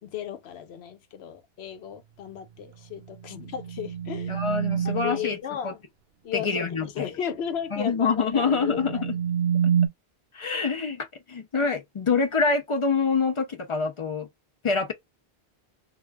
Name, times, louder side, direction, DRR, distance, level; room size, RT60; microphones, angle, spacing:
voice 1, 0.0-4.4 4.8-5.8 6.2-9.0, left 8 dB, 90° left, 0.9 m, -35 dB
sound 1, 3.0-5.3 8.3-9.9, right 8 dB, 75° right, 0.8 m, -27 dB
voice 2, 4.3-5.4 5.6-5.7 6.3-7.1 7.7-9.1 10.3-14.3 14.6-14.9, left 4 dB, 40° left, 0.4 m, -26 dB
2.4 x 2.2 x 3.2 m
omnidirectional pair, 1.0 m